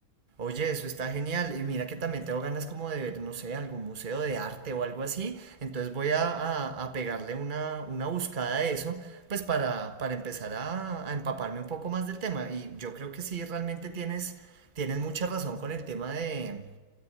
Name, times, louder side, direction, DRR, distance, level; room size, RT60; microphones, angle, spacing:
voice 1, 0.4-16.7, right 5 dB, 25° right, 1.5 m, -33 dB
30.0 x 13.5 x 9.0 m
omnidirectional pair, 2.2 m